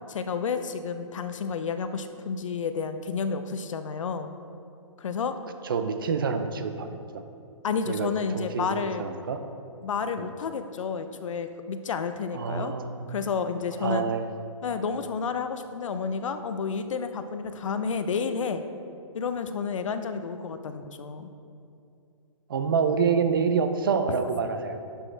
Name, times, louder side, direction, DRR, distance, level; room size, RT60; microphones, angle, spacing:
voice 1, 0.1-4.3 5.0-5.3 7.6-9.0 9.8-12.7 13.1-14.0 14.6-18.6 19.1-21.3, left 5 dB, 65° left, 9 dB, 0.6 m, -30 dB
voice 2, 5.6-7.2 7.9-9.4 10.2-10.3 12.3-13.0 13.8-14.3 22.5-24.8, right 5 dB, 40° right, 8 dB, 0.5 m, -27 dB
11.0 x 6.3 x 3.3 m, 2.5 s
hypercardioid pair, 175°, 17 cm